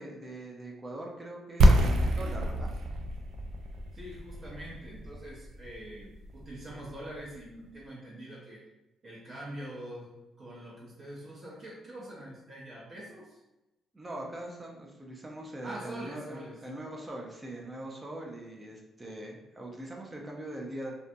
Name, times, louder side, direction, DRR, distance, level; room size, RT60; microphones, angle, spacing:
voice 1, 0.0-2.7 13.9-20.9, right 1 dB, 20° right, -1 dB, 0.5 m, -42 dB
sound 1, 1.6-7.3, equal, 75° right, 0.3 m, -27 dB
voice 2, 3.9-8.6 9.0-10.1 10.4-13.4 15.6-16.6, right 1 dB, 50° right, -6 dB, 0.8 m, -44 dB
2.6 x 2.2 x 2.6 m, 0.96 s
cardioid pair, 90°, 0 cm